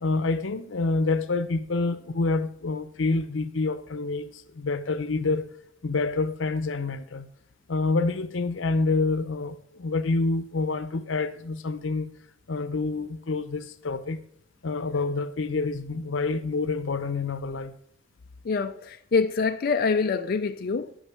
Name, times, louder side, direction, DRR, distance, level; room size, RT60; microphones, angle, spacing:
voice 1, 0.0-5.5 5.8-7.3 7.7-12.1 12.5-14.2 14.6-17.7, left 3 dB, 85° left, 0.7 m, -27 dB
voice 2, 18.4-21.0, left 4 dB, 50° left, 0.5 m, -25 dB
10.0 x 5.4 x 6.7 m
head